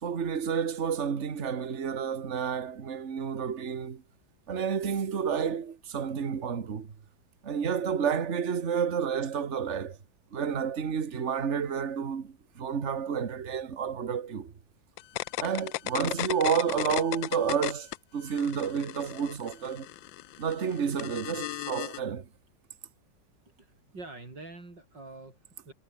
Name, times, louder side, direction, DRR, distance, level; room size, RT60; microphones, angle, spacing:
voice 1, 0.0-4.0 4.5-6.9 7.4-10.0 10.3-14.5 15.4-19.9 20.4-22.3, right 7 dB, 40° right, 1.8 m, -30 dB
sound 1, 15.0-18.0 18.3-22.0, left 16 dB, 90° left, 1.3 m, -35 dB
voice 2, 23.6-25.7, right 2 dB, 70° right, 6.7 m, -46 dB
omnidirectional pair, 2.0 m